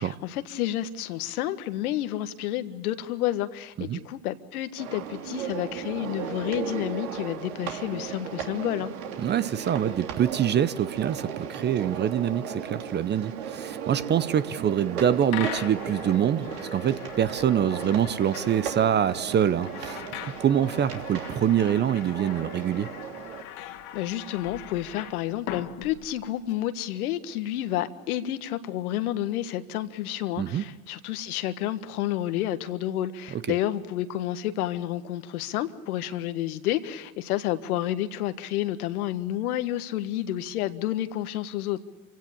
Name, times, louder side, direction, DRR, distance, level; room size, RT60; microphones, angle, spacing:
voice 1, 0.0-8.9 23.9-41.8, left 13 dB, 70° left, 11 dB, 1.6 m, -30 dB
sound 1, 4.8-23.4, right 7 dB, 70° right, 3.0 m, -36 dB
voice 2, 9.2-22.9 30.4-30.6 33.3-33.6, right 9 dB, 25° right, 16 dB, 0.7 m, -25 dB
sound 2, 15.3-26.5, left 11 dB, 55° left, 2.3 m, -41 dB
27.0 x 16.5 x 8.7 m, 1.5 s
hypercardioid pair, 105°, 45 cm